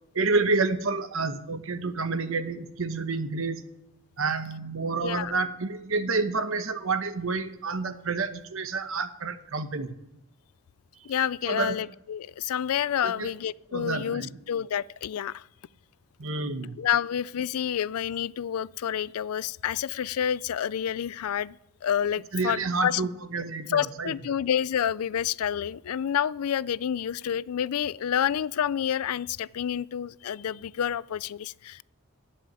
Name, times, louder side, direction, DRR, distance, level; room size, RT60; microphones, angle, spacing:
voice 1, 0.1-3.6 4.2-9.9 11.5-11.7 13.0-13.3 13.7-14.3 16.2-16.8 22.3-24.1, right 3 dB, 70° right, 11 dB, 1.0 m, -29 dB
voice 2, 5.0-5.3 11.0-15.4 16.8-21.6 21.8-23.0 23.7-31.8, left 9 dB, 85° left, 21 dB, 0.4 m, -29 dB
11.0 x 7.7 x 9.2 m, 0.85 s
head